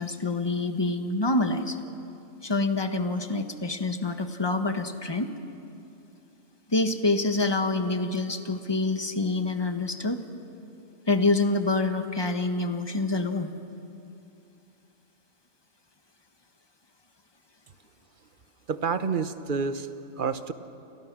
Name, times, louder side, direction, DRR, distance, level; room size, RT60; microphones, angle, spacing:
voice 1, 0.0-1.8 2.4-5.3 6.7-10.2 11.1-13.5, left 2 dB, 20° left, 7 dB, 1.3 m, -26 dB
voice 2, 18.7-19.9 20.2-20.5, right 5 dB, 40° right, 11 dB, 1.0 m, -28 dB
30.0 x 28.5 x 6.2 m, 2.7 s
omnidirectional pair, 1.5 m